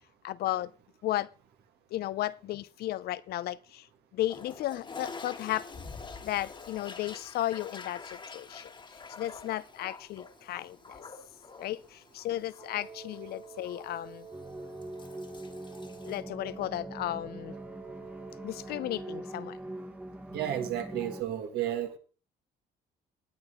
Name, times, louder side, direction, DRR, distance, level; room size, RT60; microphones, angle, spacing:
voice 1, 0.2-0.7 1.0-1.3 1.9-5.8 6.2-8.7 9.2-11.0 11.6-14.3 16.0-17.6 18.4-19.6, left 14 dB, 70° left, 0.6 m, -34 dB
Toilet flush, 4.2-16.2, left 4 dB, 30° left, 1.5 m, -47 dB
Wind instrument woodwind instrument, 12.6-19.4, right 5 dB, 40° right, 1.5 m, -48 dB
sound 1, 14.3-21.2, right 1 dB, 10° right, 1.3 m, -43 dB
voice 2, 20.3-22.0, right 11 dB, 75° right, 2.1 m, -32 dB
19.0 x 8.7 x 3.7 m
cardioid pair, 110°, 17 cm